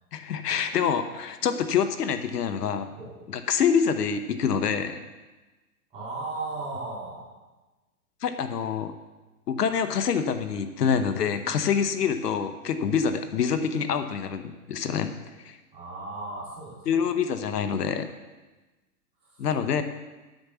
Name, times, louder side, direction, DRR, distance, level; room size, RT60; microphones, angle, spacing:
voice 1, 0.1-2.9 3.3-5.0 8.2-8.9 9.5-15.1 15.4-15.6 16.9-18.1 19.4-19.8, left 7 dB, 80° left, 9 dB, 1.0 m, -26 dB
voice 2, 5.9-7.3 15.7-17.1 19.2-19.5, right 3 dB, 10° right, -7 dB, 2.8 m, -36 dB
9.4 x 6.1 x 7.0 m, 1.2 s
hypercardioid pair, 170°, 47 cm